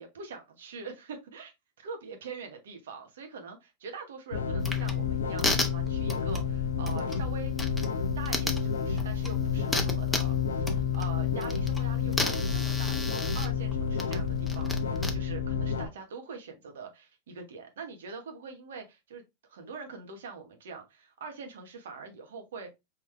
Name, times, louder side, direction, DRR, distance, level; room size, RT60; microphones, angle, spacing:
voice 1, 0.0-1.5 1.8-7.7 8.2-19.2 19.5-22.7, right 5 dB, 75° right, 1.1 m, -43 dB
sound 1, 4.3-15.9, left 6 dB, 80° left, 0.6 m, -30 dB
sound 2, 4.6-15.1, left 2 dB, 10° left, 0.8 m, -36 dB
3.9 x 3.1 x 3.1 m
hypercardioid pair, 95°, 0 cm